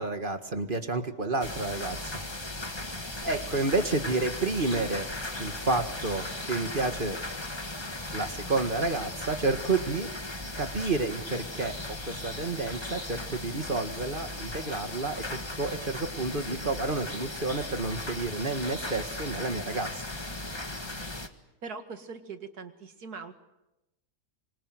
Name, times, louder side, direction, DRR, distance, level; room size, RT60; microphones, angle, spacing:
voice 1, 0.0-2.0 3.2-5.1 5.4-7.2 8.1-10.1 10.6-19.9, right 3 dB, 30° right, 7 dB, 1.8 m, -30 dB
sound 1, 1.4-21.3, left 2 dB, 15° left, 1.6 m, -37 dB
voice 2, 3.2-3.7 21.6-23.3, right 4 dB, 70° right, 7 dB, 2.4 m, -42 dB
26.0 x 25.5 x 7.9 m, 0.94 s
omnidirectional pair, 1.7 m